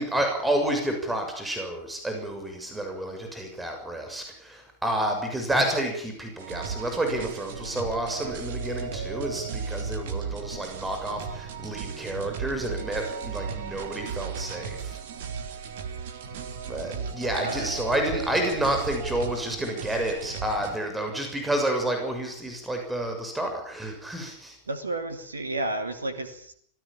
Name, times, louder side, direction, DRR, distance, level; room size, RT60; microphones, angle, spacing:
voice 1, 0.0-15.0 16.7-24.6, right 1 dB, 10° right, 4 dB, 6.7 m, -29 dB
sound 1, 6.4-20.8, right 6 dB, 55° right, 3.4 m, -35 dB
voice 2, 17.4-17.8 24.7-26.5, right 2 dB, 75° right, 9 dB, 2.6 m, -32 dB
26.0 x 18.0 x 8.9 m, 0.63 s
figure-of-eight pair, 90°, 0 cm